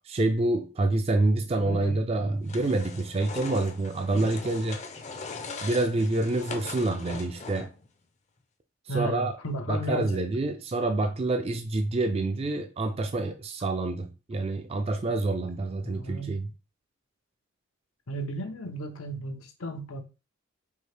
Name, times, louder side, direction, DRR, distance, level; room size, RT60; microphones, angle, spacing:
voice 1, 0.0-4.8 5.6-7.7 8.9-9.4 9.7-16.5, right 2 dB, 30° right, 0.3 m, -27 dB
voice 2, 1.6-2.0 8.9-10.2 15.8-16.4 18.1-20.0, right 1 dB, 85° left, 0.8 m, -34 dB
sound 1, 2.5-7.9, left 4 dB, 35° left, 0.5 m, -40 dB
4.5 x 2.8 x 3.2 m
head